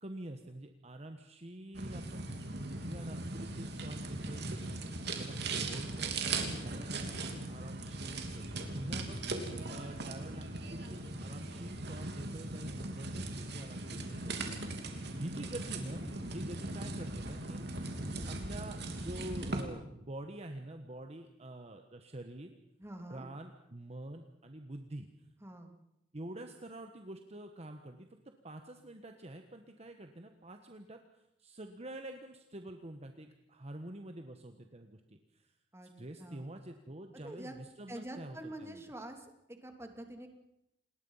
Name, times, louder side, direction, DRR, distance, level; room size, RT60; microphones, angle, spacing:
voice 1, 0.0-2.2 2.7-4.5 5.2-6.2 6.4-9.3 9.7-17.6 18.3-22.6 23.1-25.1 26.1-28.1 28.4-31.0 31.4-35.5 36.0-38.8, right 1 dB, 35° right, 6 dB, 1.3 m, -46 dB
sound 1, 1.7-19.6, right 2 dB, 65° right, 3.0 m, -39 dB
voice 2, 22.8-23.3 25.4-25.7 35.7-35.9 36.2-36.5 37.2-37.5 37.9-40.3, right 1 dB, 15° right, 4 dB, 2.7 m, -46 dB
28.0 x 20.0 x 5.7 m, 0.83 s
head